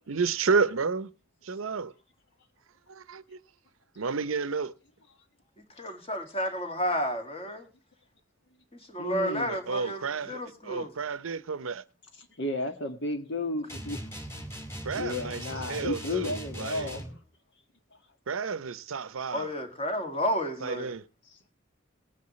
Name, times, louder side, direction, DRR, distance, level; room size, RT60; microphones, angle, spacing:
voice 1, 0.1-1.1 1.4-1.9 2.9-3.4 4.0-4.7 9.5-11.8 14.8-16.9 18.3-19.5 20.6-21.0, right 5 dB, 85° right, 0.7 m, -31 dB
voice 2, 5.8-7.7 8.7-10.9 19.3-20.9, equal, 30° left, 2.1 m, -31 dB
voice 3, 9.0-9.5 12.4-14.0 14.9-17.2, left 2 dB, 60° left, 1.8 m, -33 dB
sound 1, 13.7-17.2, equal, 15° left, 2.4 m, -40 dB
19.5 x 9.6 x 3.1 m
head